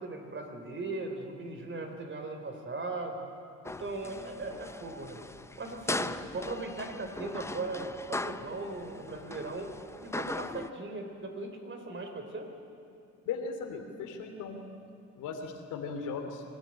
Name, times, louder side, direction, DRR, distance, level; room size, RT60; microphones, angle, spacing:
voice 1, 0.0-3.3 3.6-5.2 5.6-9.7 10.0-12.5, right 2 dB, 40° right, 5 dB, 3.6 m, -38 dB
sound 1, 3.6-10.7, left 2 dB, 10° left, 0.6 m, -39 dB
voice 2, 13.2-14.7 15.2-16.4, left 5 dB, 90° left, 4 dB, 2.8 m, -37 dB
24.0 x 14.5 x 9.8 m, 2.5 s
cardioid pair, 90°, 30 cm